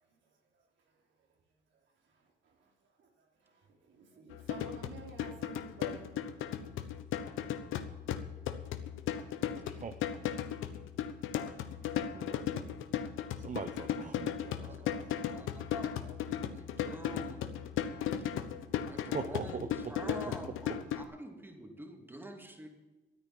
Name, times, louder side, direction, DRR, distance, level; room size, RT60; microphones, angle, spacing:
voice 1, 3.9-6.1, right 3 dB, 70° right, 1 dB, 3.2 m, -50 dB
sound 1, 4.3-21.0, left 9 dB, 90° left, 1.0 m, -36 dB
voice 2, 13.4-15.4 19.1-19.7, right 6 dB, 40° right, 9 dB, 0.9 m, -42 dB
voice 3, 15.3-17.5 18.9-22.7, equal, 10° right, 3 dB, 2.6 m, -47 dB
13.5 x 9.6 x 7.5 m, 1.2 s
cardioid pair, 90°, 20 cm